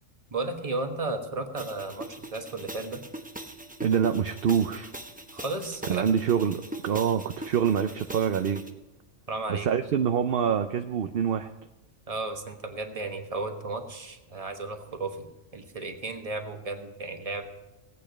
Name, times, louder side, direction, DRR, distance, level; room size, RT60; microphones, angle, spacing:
voice 1, 0.3-3.0 5.3-6.1 9.3-9.8 12.1-17.5, right 3 dB, 30° right, 5 dB, 1.3 m, -34 dB
sound 1, 1.5-8.7, right 1 dB, 10° right, 0.7 m, -42 dB
voice 2, 3.8-4.9 5.9-8.6 9.5-11.5, right 8 dB, 60° right, 7 dB, 0.7 m, -25 dB
17.5 x 8.7 x 5.2 m, 0.99 s
omnidirectional pair, 1.3 m